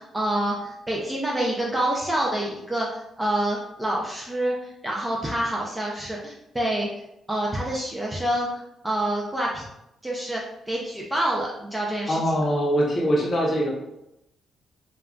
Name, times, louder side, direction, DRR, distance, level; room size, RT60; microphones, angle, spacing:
voice 1, 0.0-6.9 7.3-9.6 10.0-12.2, right 1 dB, 10° right, -3 dB, 0.3 m, -27 dB
voice 2, 12.1-13.7, equal, 30° left, -2 dB, 0.6 m, -22 dB
2.2 x 2.1 x 3.6 m, 0.85 s
cardioid pair, 180°, 0 cm